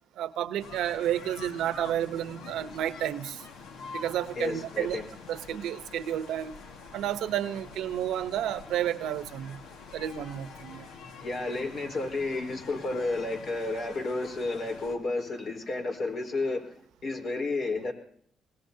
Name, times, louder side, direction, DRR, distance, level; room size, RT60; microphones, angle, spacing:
voice 1, 0.2-3.4 3.9-5.0 5.3-6.5 6.9-9.6 9.9-10.9, right 11 dB, 85° right, 12 dB, 0.9 m, -31 dB
sound 1, 0.6-15.0, left 4 dB, 90° left, 1.8 m, -46 dB
voice 2, 4.4-5.1 11.2-17.9, left 2 dB, 60° left, 4 dB, 4.4 m, -31 dB
24.0 x 19.5 x 2.8 m, 0.64 s
cardioid pair, 90°, 0 cm